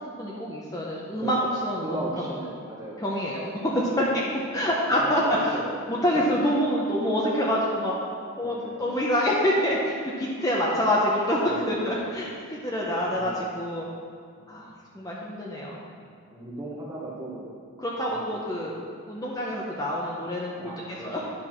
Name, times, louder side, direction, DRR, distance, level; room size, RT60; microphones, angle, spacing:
voice 1, 0.2-1.4 1.6-2.0 3.0-4.2 4.5-5.6 5.9-7.9 8.4-13.9 14.5-15.8 17.8-18.8 19.1-21.2, equal, 15° left, -5 dB, 0.8 m, -26 dB
voice 2, 1.2-3.3 4.0-4.3 4.9-6.0 8.4-9.0 11.5-11.9 13.1-13.5 14.4-14.6 16.0-17.5 18.1-18.4 20.6-21.3, right 1 dB, 15° right, -4 dB, 1.3 m, -37 dB
10.0 x 4.6 x 5.9 m, 2.1 s
head